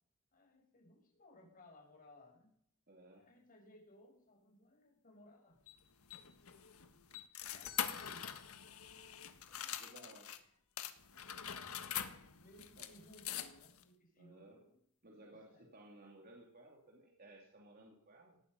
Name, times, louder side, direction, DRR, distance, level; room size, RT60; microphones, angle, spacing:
voice 1, 0.3-2.5 3.1-5.6 7.4-8.4 9.5-10.3 11.2-11.7 12.4-14.8 15.0-15.7, left 1 dB, 40° left, 0 dB, 6.1 m, -62 dB
voice 2, 2.9-3.3 9.8-10.3 12.8-12.9 14.2-14.6 15.0-18.4, right 1 dB, 45° right, 0 dB, 3.0 m, -58 dB
sound 1, 5.7-10.4 10.8-13.8, left 9 dB, 80° left, 1.5 m, -44 dB
18.5 x 14.5 x 5.5 m, 0.67 s
head